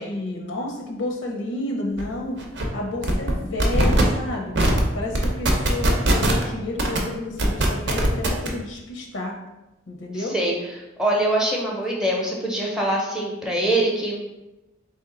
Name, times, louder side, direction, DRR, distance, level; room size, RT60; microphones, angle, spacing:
voice 1, 0.0-2.4 2.7-4.5 4.9-9.3 9.9-10.3, left 2 dB, 90° left, 0 dB, 0.6 m, -30 dB
sound 1, 2.0-2.1 2.4-2.7 3.0-3.3 3.6-4.0 4.6-4.8 5.1-6.4 6.8-7.0 7.4-8.5, right 1 dB, 65° right, 0.6 m, -20 dB
voice 2, 10.1-14.2, right 1 dB, 5° right, -2 dB, 0.5 m, -24 dB
3.4 x 2.8 x 3.8 m, 0.98 s
head